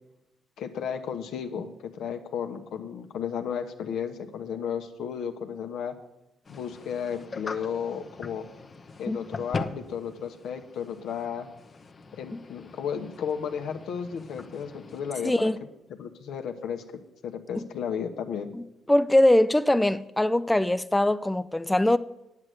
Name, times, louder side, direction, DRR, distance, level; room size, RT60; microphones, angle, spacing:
voice 1, 0.6-6.0 6.5-8.5 9.0-11.5 12.1-15.5 16.0-16.9 17.2-18.5, left 7 dB, 75° left, 1.1 m, -33 dB
sound 1, 6.4-15.3, left 3 dB, 35° left, 0.7 m, -41 dB
voice 2, 15.2-15.6 18.9-22.0, left 1 dB, 10° left, 0.4 m, -22 dB
9.7 x 7.8 x 8.1 m
cardioid pair, 90°, 0 cm